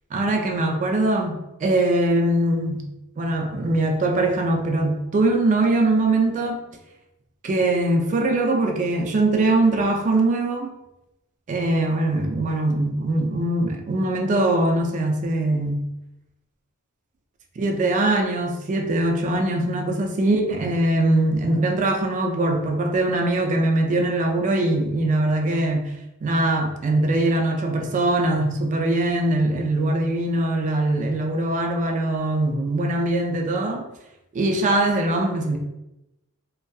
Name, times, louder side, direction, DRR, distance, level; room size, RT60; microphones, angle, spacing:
voice 1, 0.1-2.9 3.2-6.7 7.4-10.7 11.5-15.8 17.6-25.9 26.2-33.9 34.3-35.6, right 2 dB, 35° right, 3 dB, 0.3 m, -22 dB
2.5 x 2.2 x 2.3 m, 0.92 s
head